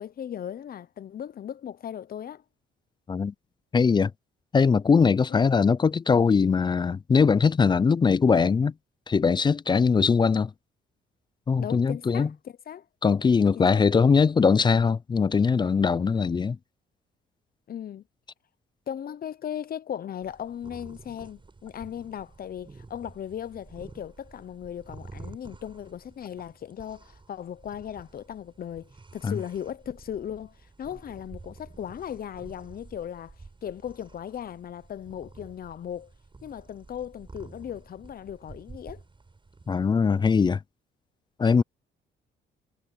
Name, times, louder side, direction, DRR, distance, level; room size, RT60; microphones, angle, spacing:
voice 1, 0.0-2.4 5.3-5.4 11.6-12.9 13.6-13.9 17.7-18.0 18.9-33.3 33.6-36.1 36.4-39.0, left 9 dB, 50° left, 0.7 m, -37 dB
voice 2, 3.7-4.1 4.5-8.7 9.1-10.5 11.5-12.3 13.0-16.6 29.2-29.4 39.7-40.6 41.4-41.6, left 5 dB, 25° left, 0.3 m, -21 dB
sound 1, 20.2-39.9, right 3 dB, 25° right, 6.7 m, -50 dB
cardioid pair, 90°, 20 cm